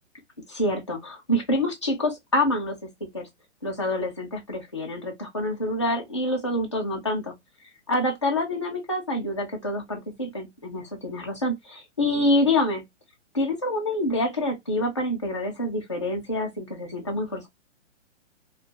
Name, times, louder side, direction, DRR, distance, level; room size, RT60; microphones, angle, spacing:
voice 1, 0.5-2.8 3.1-3.3 3.6-7.3 7.9-12.8 13.3-17.5, left 1 dB, 25° left, 0.3 m, -26 dB
2.4 x 2.1 x 2.7 m
hypercardioid pair, 175°, 36 cm